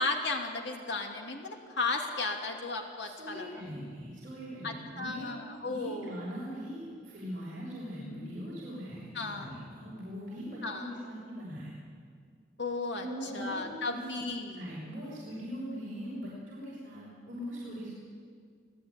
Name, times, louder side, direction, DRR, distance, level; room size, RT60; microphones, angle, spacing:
voice 1, 0.0-3.5 4.6-6.2 8.0-8.3 9.1-9.5 10.6-10.9 12.6-14.6, left 3 dB, 70° left, 3 dB, 2.7 m, -35 dB
voice 2, 3.2-5.3 5.6-11.7 13.0-14.0 14.5-17.9, equal, 45° right, -7 dB, 6.3 m, -41 dB
26.0 x 16.0 x 9.8 m, 2.1 s
head